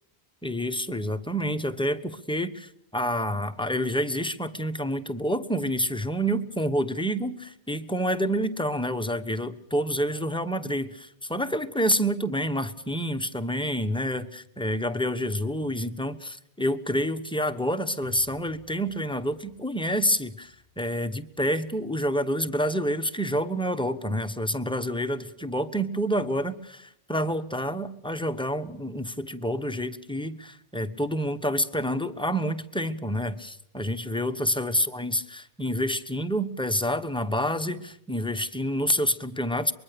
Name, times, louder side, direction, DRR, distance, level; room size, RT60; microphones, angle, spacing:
voice 1, 0.4-39.7, equal, 5° left, 8 dB, 1.0 m, -28 dB
sound 1, 18.0-22.5 22.8-22.9, left 1 dB, 55° right, 5.3 m, -54 dB
24.0 x 22.0 x 6.8 m, 0.71 s
omnidirectional pair, 1.1 m